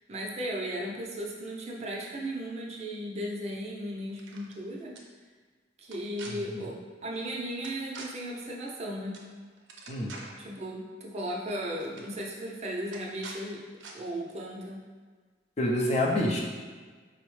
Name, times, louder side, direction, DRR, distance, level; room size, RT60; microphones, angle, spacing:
voice 1, 0.1-4.9 5.8-6.7 7.0-9.2 10.4-13.6 13.9-14.8, equal, 35° right, -3 dB, 0.5 m, -36 dB
sound 1, 4.1-4.6 4.9-5.0 5.8-6.3 7.6-8.1 9.1-9.3 9.6-10.4 11.4-11.5 11.8-12.1 12.9-13.4 13.8-13.9, right 4 dB, 85° right, 0.5 m, -45 dB
voice 2, 6.3-6.6 9.9-10.2 15.6-16.4, left 1 dB, 35° left, -2 dB, 0.5 m, -28 dB
4.7 x 2.1 x 3.1 m, 1.5 s
head